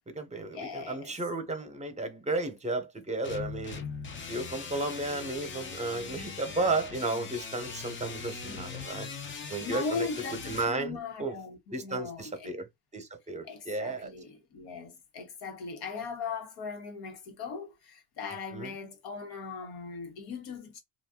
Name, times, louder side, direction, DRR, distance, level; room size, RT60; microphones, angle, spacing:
voice 1, 0.0-3.8 4.3-9.1 9.5-11.3 11.7-12.7 12.9-14.1 18.5-18.7, right 2 dB, 20° right, 0.9 m, -33 dB
voice 2, 0.5-1.1 8.5-8.7 9.3-12.5 13.4-20.8, left 5 dB, 80° left, 1.3 m, -39 dB
sound 1, 3.2-10.7, left 5 dB, 30° left, 0.7 m, -40 dB
2.6 x 2.5 x 3.6 m
cardioid pair, 100°, 38 cm